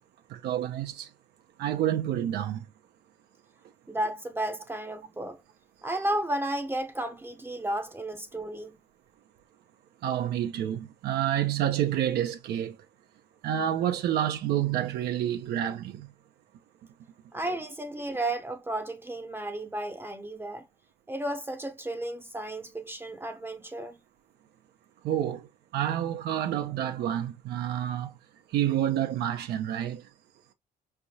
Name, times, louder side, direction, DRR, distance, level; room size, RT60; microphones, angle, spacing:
voice 1, 0.3-1.1 1.6-2.7 10.0-12.8 13.4-16.1 25.0-25.5 25.7-28.2 28.5-30.1, right 11 dB, 75° right, 0.8 m, -28 dB
voice 2, 3.9-5.4 5.8-8.8 17.3-20.7 21.1-24.0, right 1 dB, 15° right, 0.8 m, -33 dB
4.7 x 3.4 x 2.8 m
cardioid pair, 110°, 17 cm